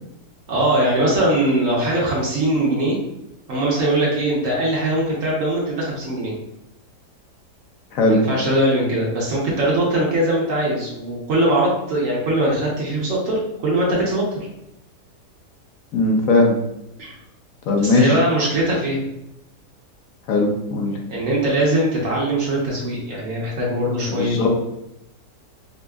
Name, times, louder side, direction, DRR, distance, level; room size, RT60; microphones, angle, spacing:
voice 1, 0.5-3.0 3.5-6.3 8.1-14.2 17.0-17.1 17.8-19.0 21.1-24.3, right 1 dB, 55° right, -4 dB, 1.1 m, -21 dB
voice 2, 7.9-8.2 15.9-16.6 17.7-18.2 20.3-21.0 24.0-24.5, left 2 dB, 65° left, 1 dB, 1.0 m, -18 dB
5.1 x 2.0 x 2.3 m, 0.83 s
omnidirectional pair, 1.8 m